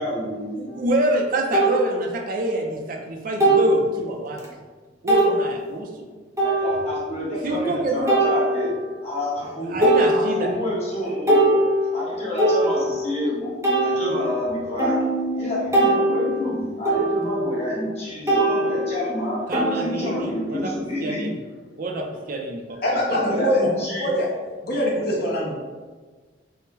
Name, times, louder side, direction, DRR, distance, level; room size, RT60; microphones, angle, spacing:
voice 1, 0.0-0.4 6.4-8.7 9.0-9.7 10.1-11.6 11.9-13.5 13.8-15.0 15.3-19.4 19.7-21.2 23.1-24.1, equal, 35° left, -7 dB, 1.4 m, -28 dB
voice 2, 0.6-4.4 5.0-6.1 7.4-8.3 9.7-10.5 19.5-20.7 21.0-21.4 21.8-22.8 23.1-23.4, right 2 dB, 45° right, 2 dB, 0.4 m, -26 dB
sound 1, 0.7-0.8 1.5-1.7 3.4-3.8 4.4-4.5 5.1-5.3 6.4-7.0 8.1-8.9 9.4-9.5 9.8-10.7 11.0-13.2 13.6-18.0 18.3-20.6, right 1 dB, 15° right, 0.7 m, -22 dB
voice 3, 22.8-23.7 24.0-24.3 24.6-25.6, equal, 55° left, -4 dB, 0.6 m, -23 dB
3.5 x 2.0 x 4.1 m, 1.4 s
head